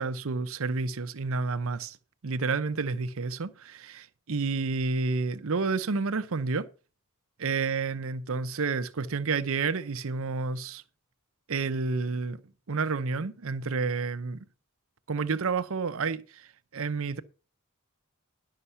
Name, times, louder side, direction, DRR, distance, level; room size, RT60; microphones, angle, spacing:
voice 1, 0.0-2.0 2.2-6.7 7.4-10.8 11.5-12.4 12.7-14.4 15.1-17.2, right 4 dB, 65° right, 0.7 m, -30 dB
11.0 x 6.6 x 5.6 m
head